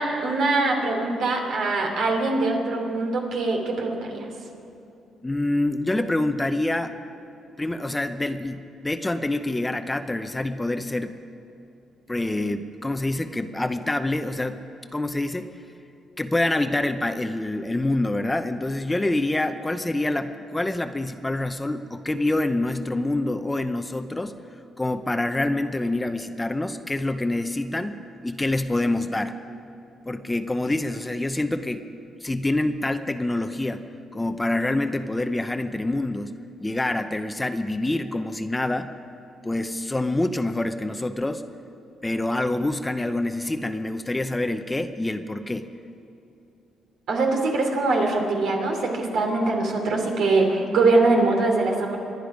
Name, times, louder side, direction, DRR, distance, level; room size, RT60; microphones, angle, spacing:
voice 1, 0.0-4.3 47.1-52.0, right 3 dB, 75° right, 1 dB, 3.0 m, -23 dB
voice 2, 5.2-6.9 7.6-11.2 12.1-14.6 14.9-15.5 16.2-24.4 24.8-29.4 30.1-31.8 32.2-33.9 34.1-38.9 39.4-41.4 42.0-45.7 50.7-50.9 51.2-51.3, left 2 dB, 15° left, 9 dB, 0.7 m, -26 dB
25.5 x 10.5 x 5.1 m, 2.8 s
cardioid pair, 90°, 0 cm